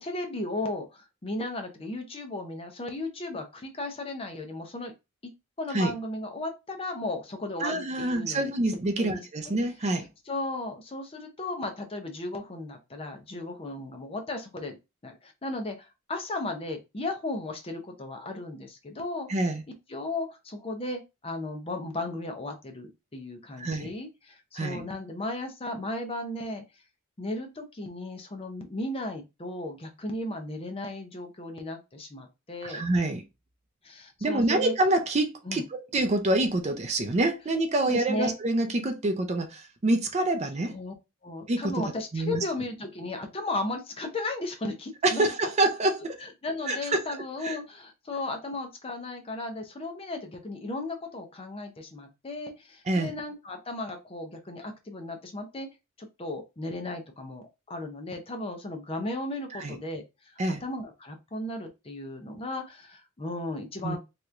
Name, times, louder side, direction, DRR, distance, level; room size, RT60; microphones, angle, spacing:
voice 1, 0.0-4.9 5.6-8.5 9.0-9.3 10.3-14.8 15.0-19.3 19.9-26.6 27.2-32.8 33.8-34.7 35.5-35.6 37.8-38.3 40.7-40.9 41.2-45.3 46.0-55.7 56.0-60.3 60.6-64.0, left 2 dB, 25° left, 0.6 m, -35 dB
voice 2, 7.6-10.1 19.3-19.6 23.6-23.9 24.6-24.8 32.6-33.2 34.2-40.7 41.5-42.4 45.0-46.2 46.7-47.1 47.4-47.6 52.9-53.1 59.5-59.8 60.4-60.6 63.8-64.0, right 2 dB, 30° right, 0.5 m, -26 dB
3.2 x 3.0 x 2.4 m
head